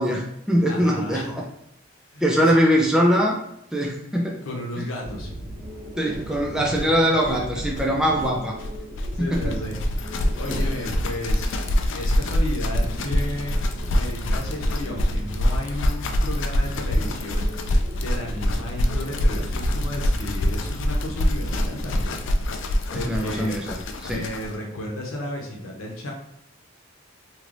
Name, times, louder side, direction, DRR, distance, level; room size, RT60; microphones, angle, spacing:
voice 1, 0.0-1.4 2.2-3.4 3.7-4.4 6.0-8.6 9.2-9.6 10.5-10.6 22.9-24.2, equal, 5° right, -1 dB, 0.4 m, -22 dB
voice 2, 0.7-1.3 2.1-2.5 4.4-5.3 6.6-7.1 9.1-11.5 11.9-17.5 17.9-22.2 22.9-23.5 24.0-26.1, left 1 dB, 85° left, 0 dB, 0.8 m, -33 dB
sound 1, 5.0-22.6, equal, 80° right, 0.7 m, -37 dB
sound 2, 6.1-6.2 6.4-6.5 6.7-24.6, equal, 65° left, 0.4 m, -25 dB
3.2 x 2.9 x 2.5 m, 0.78 s
head